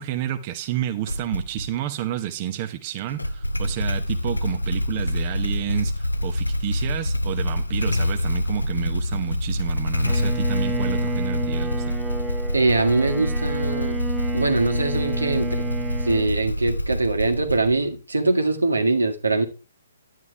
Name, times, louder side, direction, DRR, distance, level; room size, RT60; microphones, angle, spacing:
voice 1, 0.0-12.0, right 12 dB, 35° right, 1.0 m, -30 dB
Motorcycle / Engine starting, 1.1-1.7 3.1-18.0, left 1 dB, 85° left, 0.7 m, -26 dB
Bowed string instrument, 10.0-16.3, right 3 dB, 10° right, 1.2 m, -31 dB
voice 2, 12.5-14.0 14.3-15.6 16.0-19.5, right 3 dB, 80° right, 1.7 m, -22 dB
11.0 x 9.3 x 3.4 m
figure-of-eight pair, 130°, 0 cm